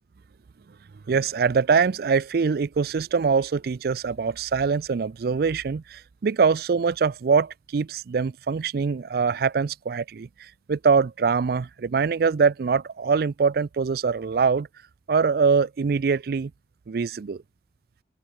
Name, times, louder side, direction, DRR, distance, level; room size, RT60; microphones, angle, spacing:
voice 1, 1.1-14.7 15.1-16.5 16.9-17.4, right 5 dB, 60° right, 0.4 m, -23 dB
open air
head